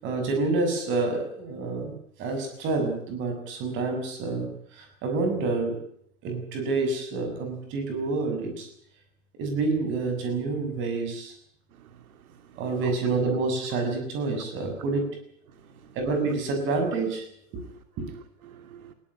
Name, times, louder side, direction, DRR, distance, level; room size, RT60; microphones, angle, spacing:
voice 1, 0.0-5.8 6.2-8.7 9.4-11.3 12.6-15.1 15.9-17.2 17.5-17.6 18.0-18.1, right 3 dB, 25° right, 6.7 m, -28 dB
voice 2, 11.7-12.9 15.5-16.0 17.6-18.9, right 9 dB, 80° right, 2.8 m, -50 dB
20.0 x 17.5 x 10.0 m
supercardioid pair, 170°, 43 cm